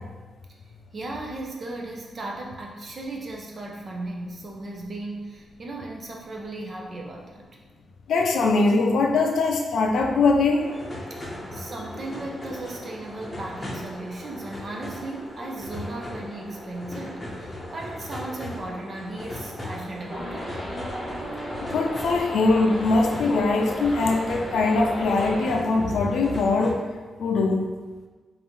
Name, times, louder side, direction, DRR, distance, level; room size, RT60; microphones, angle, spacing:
voice 1, 0.9-7.5 11.1-11.2 11.5-20.6, right 2 dB, 40° right, -1 dB, 0.5 m, -36 dB
voice 2, 8.1-10.7 21.7-26.8 27.2-27.6, left 3 dB, 80° left, 2 dB, 0.5 m, -22 dB
sound 1, 10.6-26.7, left 1 dB, 20° left, 0.8 m, -38 dB
sound 2, 20.1-25.5, equal, 5° right, 1.3 m, -35 dB
5.4 x 2.6 x 3.0 m, 1.3 s
wide cardioid pair, 140°, 0 cm